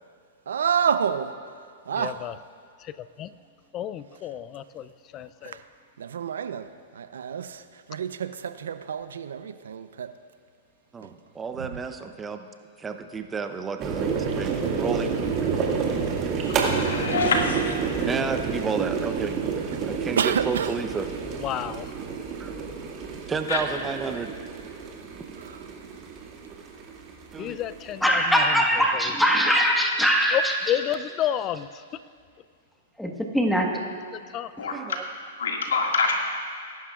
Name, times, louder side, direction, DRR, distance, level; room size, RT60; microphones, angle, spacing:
voice 1, 0.5-1.4 1.9-2.2 5.4-5.6 6.0-10.1 11.6-11.8 19.7-19.8 20.2-20.7 25.4-25.6, right 7 dB, 80° right, 11 dB, 0.6 m, -28 dB
voice 2, 2.0-2.3 3.2-3.3 3.7-5.6 21.4-21.9 27.4-28.5 28.9-29.0 30.3-31.7 34.3-34.5, left 11 dB, 30° left, 15 dB, 0.4 m, -30 dB
voice 3, 10.9-12.5 12.8-15.2 18.1-19.4 19.8-21.1 22.4-22.5 23.3-24.3 27.3-27.6 34.7-35.0, right 5 dB, 15° right, 7 dB, 0.7 m, -31 dB
sound 1, 13.8-28.3, right 5 dB, 35° right, 2.0 m, -29 dB
voice 4, 16.4-17.7 23.5-23.6 34.6-34.8 35.4-36.2, left 4 dB, 90° left, 1 dB, 2.0 m, -26 dB
voice 5, 28.0-30.6 33.0-33.7, equal, ahead, 1 dB, 1.4 m, -21 dB
21.5 x 11.0 x 2.4 m, 2.1 s
hypercardioid pair, 125°, 0 cm